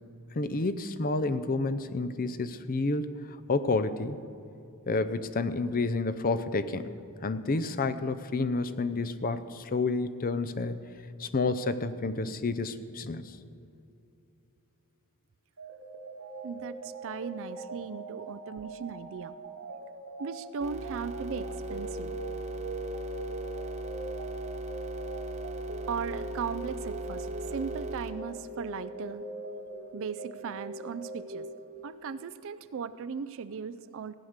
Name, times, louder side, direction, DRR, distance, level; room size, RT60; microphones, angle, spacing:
voice 1, 0.3-3.1 3.5-4.2 4.9-6.9 7.2-10.8 11.2-13.2, left 3 dB, 40° left, 11 dB, 0.6 m, -29 dB
sound 1, 15.6-32.2, right 2 dB, 90° right, 2.5 m, -42 dB
voice 2, 16.4-19.3 20.2-22.2 25.9-29.3 29.9-31.5 31.8-34.1, right 6 dB, 60° right, 13 dB, 0.4 m, -37 dB
sound 2, 20.6-28.1, right 1 dB, 30° right, 0.9 m, -38 dB
16.0 x 9.4 x 6.6 m, 2.7 s
head